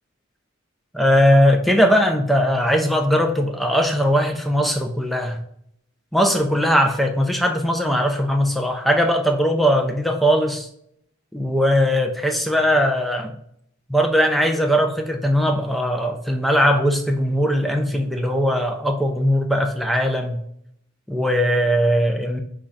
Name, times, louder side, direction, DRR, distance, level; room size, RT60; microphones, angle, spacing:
voice 1, 0.9-5.4 6.1-10.7 11.3-13.4 13.9-20.4 21.1-22.4, equal, ahead, 4 dB, 0.4 m, -19 dB
5.4 x 2.4 x 3.2 m, 0.71 s
head